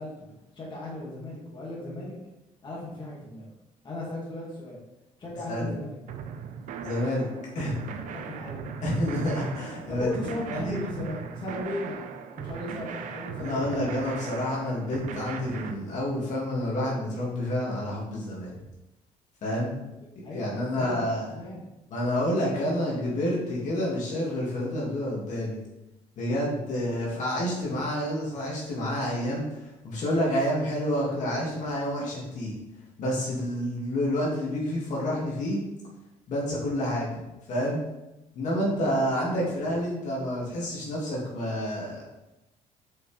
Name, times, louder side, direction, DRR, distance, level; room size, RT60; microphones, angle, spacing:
voice 1, 0.0-2.1 2.6-3.4 3.8-4.8 5.2-6.0 7.9-8.7 9.9-13.9 20.2-21.7 38.5-39.0, left 1 dB, 35° left, -5 dB, 2.2 m, -37 dB
sound 1, 6.1-15.7, right 7 dB, 70° right, 0.6 m, -38 dB
voice 2, 6.8-7.3 7.5-7.8 8.8-10.1 10.4-10.8 13.4-18.5 19.4-19.7 20.2-21.3 21.9-25.6 26.2-32.5 33.0-35.6 36.3-37.1 37.5-37.8 38.3-42.0, equal, 65° left, -5 dB, 2.3 m, -29 dB
6.4 x 5.5 x 3.4 m, 0.97 s
cardioid pair, 100°, 13 cm